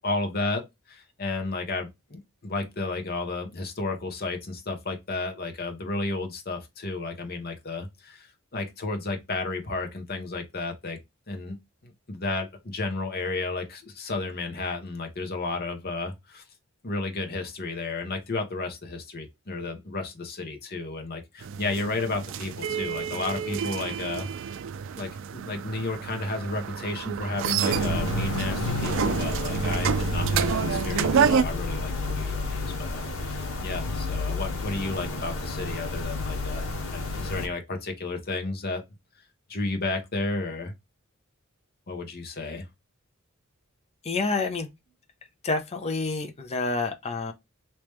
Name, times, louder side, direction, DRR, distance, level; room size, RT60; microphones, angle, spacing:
voice 1, 0.0-11.0 11.3-11.6 11.8-16.4 16.8-24.6 25.0-38.8 39.5-40.7 41.9-42.7, left 3 dB, 45° left, 1.0 m, -32 dB
sound 1, 21.4-31.4, right 7 dB, 65° right, 0.3 m, -28 dB
sound 2, 27.7-37.5, left 3 dB, 85° left, 1.1 m, -31 dB
voice 2, 44.0-44.7 45.4-47.3, left 3 dB, 30° left, 0.6 m, -28 dB
3.1 x 3.0 x 3.3 m
head